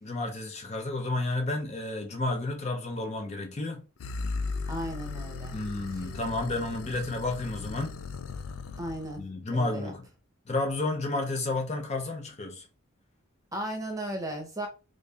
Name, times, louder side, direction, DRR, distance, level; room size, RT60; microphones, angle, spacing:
voice 1, 0.0-3.9 5.5-8.0 9.2-10.1 10.5-12.7, left 2 dB, 35° left, 0.6 m, -31 dB
sound 1, 4.0-9.2, left 3 dB, 80° left, 0.4 m, -37 dB
voice 2, 4.7-5.6 8.8-9.2 9.5-9.9 13.5-14.7, right 1 dB, 15° right, 0.8 m, -35 dB
3.2 x 2.6 x 3.3 m
head